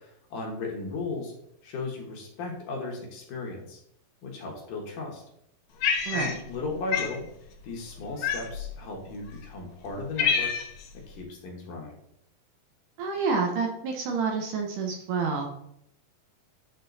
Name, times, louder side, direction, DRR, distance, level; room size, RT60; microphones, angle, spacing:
voice 1, 0.0-1.3 1.6-3.8 4.2-5.2 6.1-7.3 7.6-10.5 10.9-12.0, left 3 dB, 65° left, -1 dB, 2.7 m, -36 dB
Cat, 5.8-6.6 6.9-7.2 8.2-8.7 9.4-9.5 9.9-10.9, left 7 dB, 85° left, 2.7 m, -27 dB
voice 2, 6.1-6.4 13.0-15.5, right 4 dB, 70° right, 1 dB, 2.1 m, -28 dB
10.5 x 3.8 x 4.0 m, 0.74 s
omnidirectional pair, 4.2 m